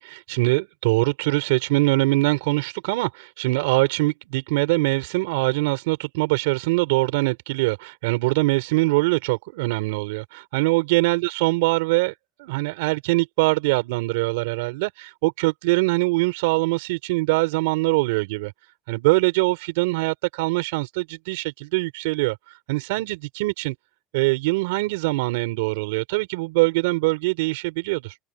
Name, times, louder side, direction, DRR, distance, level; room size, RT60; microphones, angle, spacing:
voice 1, 0.0-18.5 18.9-22.4 22.7-23.7 24.1-28.2, right 22 dB, 85° right, 4.6 m, -23 dB
open air
supercardioid pair, 105°, 0 cm